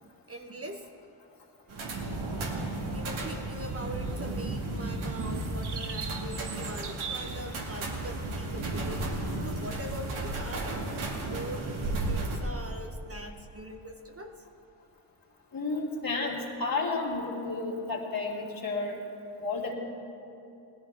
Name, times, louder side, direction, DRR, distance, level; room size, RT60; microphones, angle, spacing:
voice 1, 0.0-0.9 2.9-14.5, right 1 dB, 30° right, 4 dB, 1.1 m, -42 dB
sound 1, 1.7-12.4, right 2 dB, 75° right, 2.3 m, -34 dB
sound 2, 1.9-4.2 4.8-7.5 7.8-7.9 8.7-8.8, right 6 dB, 55° right, 1.2 m, -42 dB
voice 2, 15.5-19.0 19.4-19.7, left 3 dB, 45° left, -3 dB, 3.2 m, -31 dB
18.5 x 13.5 x 3.5 m, 2.7 s
supercardioid pair, 50°, 48 cm